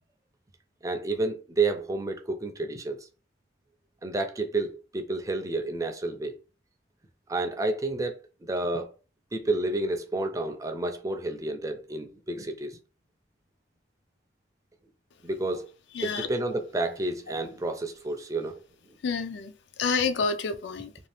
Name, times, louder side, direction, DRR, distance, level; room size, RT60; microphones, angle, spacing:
voice 1, 0.8-3.1 4.0-6.4 7.3-8.9 9.3-12.8 15.2-15.7 16.0-18.6 18.9-19.0, right 2 dB, 20° right, 0.4 m, -30 dB
voice 2, 15.9-16.3 19.0-21.1, left 5 dB, 70° left, 0.4 m, -29 dB
2.6 x 2.3 x 3.3 m
head